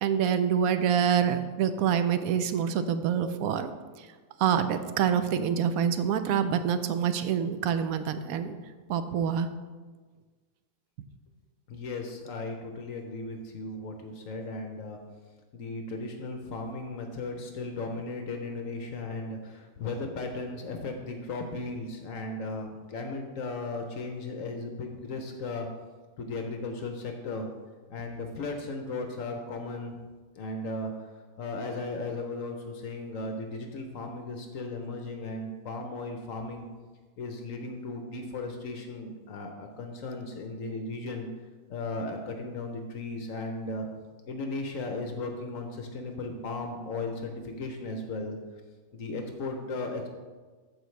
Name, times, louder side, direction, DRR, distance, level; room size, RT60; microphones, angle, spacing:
voice 1, 0.0-3.7 4.4-8.6 8.9-9.5, right 8 dB, 75° right, 10 dB, 1.0 m, -26 dB
voice 2, 11.7-15.0 15.5-25.7 26.2-27.5 27.9-30.0 30.3-30.9 31.4-36.7 37.2-41.3 41.7-43.9 44.3-48.4 48.9-50.1, left 2 dB, 65° left, 4 dB, 1.1 m, -36 dB
14.0 x 4.9 x 3.2 m, 1.4 s
omnidirectional pair, 1.6 m